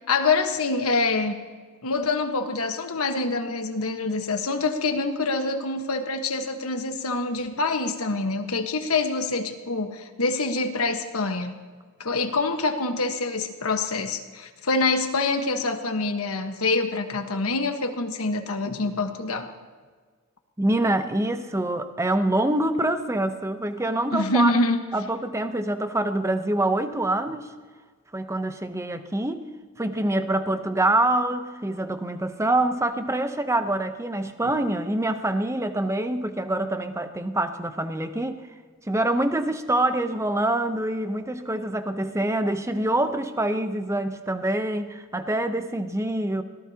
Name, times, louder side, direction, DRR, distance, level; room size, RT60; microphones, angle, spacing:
voice 1, 0.1-1.3 1.8-11.5 12.0-19.5 24.1-24.8, left 3 dB, 80° left, 5 dB, 1.3 m, -25 dB
voice 2, 20.6-24.6 24.9-27.5 28.1-29.5 29.8-38.4 38.9-46.4, right 1 dB, 15° right, 9 dB, 0.8 m, -25 dB
24.5 x 17.5 x 2.9 m, 1.5 s
head